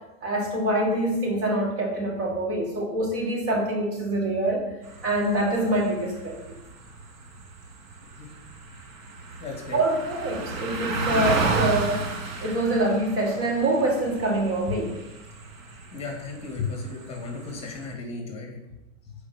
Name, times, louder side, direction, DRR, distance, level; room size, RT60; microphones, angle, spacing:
voice 1, 0.2-4.6 5.0-6.4 9.7-12.1 12.4-15.0, right 1 dB, 35° right, -2 dB, 2.2 m, -25 dB
sound 1, 4.8-17.9, right 4 dB, 80° right, 2.1 m, -33 dB
voice 2, 9.4-9.8 11.0-11.1 15.9-18.6, left 4 dB, 15° left, 1 dB, 2.4 m, -35 dB
7.1 x 4.8 x 6.0 m, 0.95 s
supercardioid pair, 135°, 39 cm